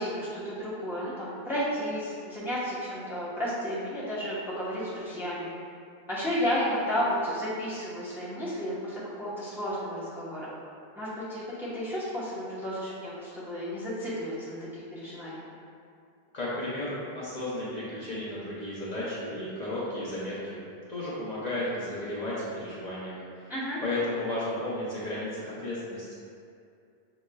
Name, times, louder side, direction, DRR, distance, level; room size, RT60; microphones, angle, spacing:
voice 1, 0.0-5.5 6.1-10.5 11.0-15.5 23.5-23.8, equal, ahead, -10 dB, 0.9 m, -32 dB
voice 2, 16.3-20.6 20.9-23.5 23.8-26.2, left 1 dB, 45° left, -9 dB, 0.8 m, -33 dB
6.2 x 3.1 x 2.3 m, 2.4 s
omnidirectional pair, 1.0 m